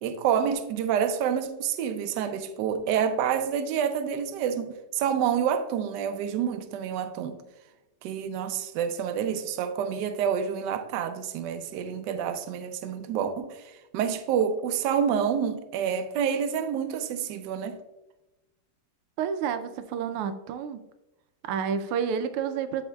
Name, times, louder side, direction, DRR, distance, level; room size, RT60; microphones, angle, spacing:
voice 1, 0.0-7.4 8.0-17.8, right 8 dB, 75° right, 1.0 m, -28 dB
voice 2, 19.2-20.8 21.4-22.8, right 7 dB, 90° right, 1.5 m, -30 dB
12.5 x 4.3 x 2.2 m
omnidirectional pair, 2.4 m